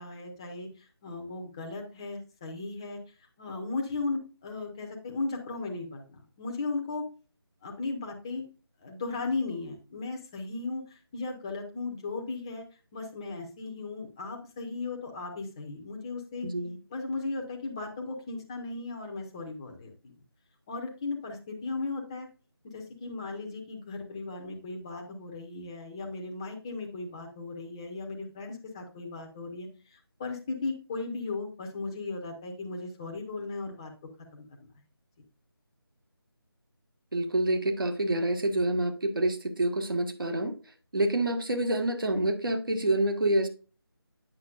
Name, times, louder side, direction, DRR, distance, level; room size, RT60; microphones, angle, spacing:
voice 1, 0.0-3.0 3.4-7.0 7.6-8.4 8.8-12.6 12.9-16.5 16.9-19.9 20.7-22.3 22.6-33.9 34.3-34.4, left 3 dB, 10° left, 1 dB, 0.8 m, -36 dB
voice 2, 16.4-16.8 37.1-40.5 40.9-43.5, right 1 dB, 60° right, 5 dB, 1.5 m, -27 dB
8.6 x 6.0 x 2.4 m, 0.34 s
figure-of-eight pair, 160°, 13 cm